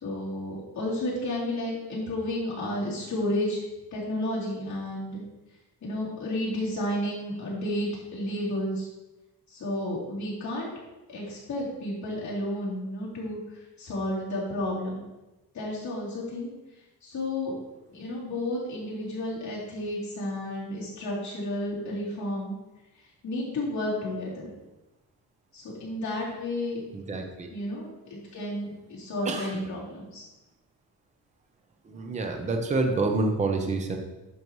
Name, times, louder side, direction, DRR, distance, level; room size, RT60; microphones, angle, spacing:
voice 1, 0.0-3.6 3.9-5.2 5.8-8.9 9.5-10.7 11.1-13.4 13.8-15.0 15.5-16.5 17.0-17.5 17.9-22.5 23.2-24.5 25.5-26.8 27.5-30.2, left 1 dB, 45° left, -7 dB, 3.2 m, -32 dB
voice 2, 26.9-27.5 29.2-29.6 31.8-34.0, right 3 dB, 20° right, 3 dB, 0.7 m, -28 dB
10.5 x 6.4 x 3.1 m, 1.0 s
cardioid pair, 175°, 39 cm